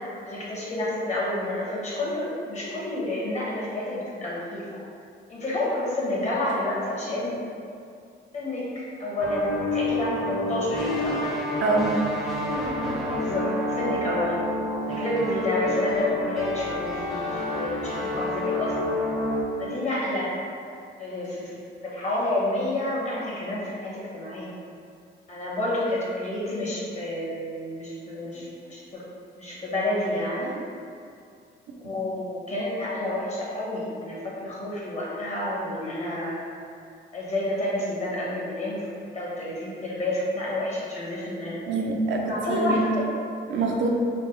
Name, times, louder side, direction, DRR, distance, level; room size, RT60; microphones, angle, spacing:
voice 1, 0.2-4.8 5.3-7.4 8.3-11.2 13.2-14.4 14.9-18.9 19.6-20.3 21.0-21.5 21.8-24.5 25.3-29.0 29.4-30.5 31.8-36.4 37.1-38.9 39.1-41.6 42.2-43.0, left 1 dB, 35° left, -6 dB, 1.1 m, -29 dB
sound 1, 9.2-19.4, left 1 dB, ahead, 0.6 m, -28 dB
voice 2, 11.6-12.0 31.8-31.9 41.7-42.8 43.5-43.9, right 3 dB, 70° right, 0 dB, 0.5 m, -25 dB
3.3 x 2.6 x 2.9 m, 2.4 s
cardioid pair, 90°, 20 cm